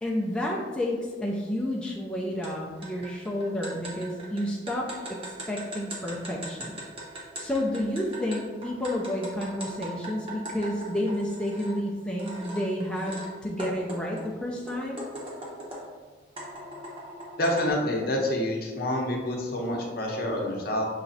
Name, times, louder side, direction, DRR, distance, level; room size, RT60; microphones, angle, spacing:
voice 1, 0.0-5.2 5.5-6.8 7.1-15.0, left 1 dB, 5° left, -3 dB, 0.4 m, -30 dB
sound 1, 2.4-2.5 2.8-11.8 12.2-13.3 13.6-15.9 16.4-17.7, right 1 dB, 30° right, 0.9 m, -40 dB
voice 2, 17.4-20.9, left 1 dB, 55° left, 0 dB, 0.7 m, -27 dB
5.7 x 3.0 x 2.6 m, 1.4 s
head